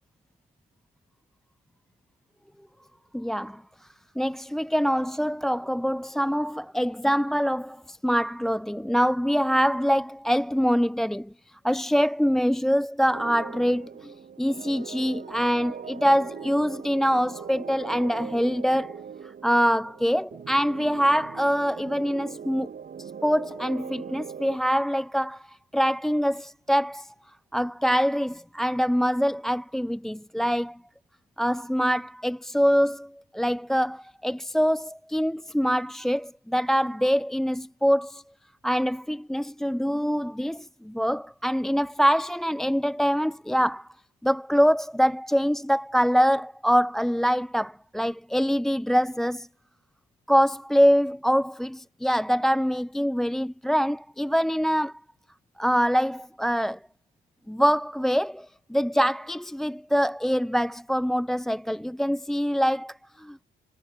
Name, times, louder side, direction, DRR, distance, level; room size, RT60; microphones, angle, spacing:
voice 1, 3.1-3.6 4.2-11.3 11.6-19.0 19.4-22.7 23.0-27.1 27.5-30.8 31.4-38.2 38.6-43.9 44.2-49.5 50.3-54.9 55.6-56.8 57.5-58.5 58.7-63.4, equal, ahead, 0.4 m, -24 dB
sound 1, 13.1-24.6, right 7 dB, 50° right, 5.5 m, -41 dB
cardioid pair, 90°, 20 cm